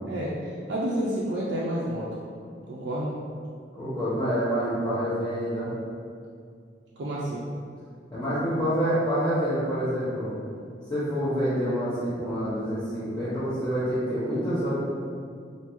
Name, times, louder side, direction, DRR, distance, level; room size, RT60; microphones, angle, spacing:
voice 1, 0.1-2.2 2.7-3.1 7.0-7.5, right 1 dB, 70° right, -6 dB, 0.4 m, -30 dB
voice 2, 3.7-5.7 8.1-10.3 10.9-14.8, equal, 20° left, -15 dB, 0.9 m, -27 dB
3.5 x 2.6 x 3.0 m, 2.3 s
head